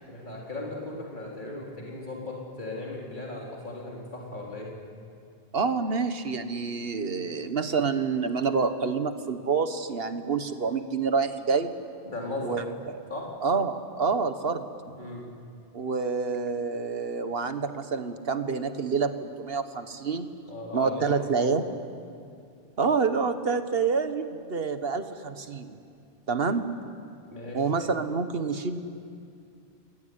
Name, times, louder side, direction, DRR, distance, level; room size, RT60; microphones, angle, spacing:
voice 1, 0.1-4.7 12.1-12.6 13.1-13.2 14.9-15.2 20.5-21.6 27.3-27.6, left 2 dB, 45° left, -3 dB, 4.2 m, -37 dB
voice 2, 5.5-11.7 12.4-12.8 13.4-14.7 15.7-20.3 20.7-21.6 22.8-25.8 26.3-26.7 27.5-28.8, right 5 dB, 65° right, 9 dB, 1.6 m, -27 dB
28.5 x 21.0 x 9.6 m, 2.4 s
omnidirectional pair, 1.1 m